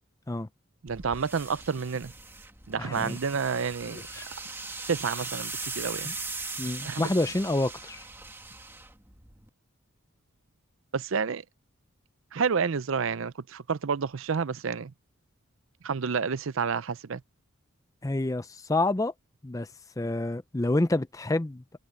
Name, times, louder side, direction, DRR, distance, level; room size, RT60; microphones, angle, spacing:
voice 1, 0.8-2.1 2.7-4.0 4.9-6.1 6.8-7.1 10.9-11.4 12.3-14.9 15.8-17.2, right 5 dB, 70° right, 0.5 m, -29 dB
sound 1, 0.9-9.5, right 3 dB, 10° right, 2.0 m, -40 dB
voice 2, 2.8-3.2 4.1-4.3 6.0-6.1 6.6-8.0 18.0-19.1 19.4-19.7 20.0-21.6, left 2 dB, 15° left, 0.5 m, -28 dB
head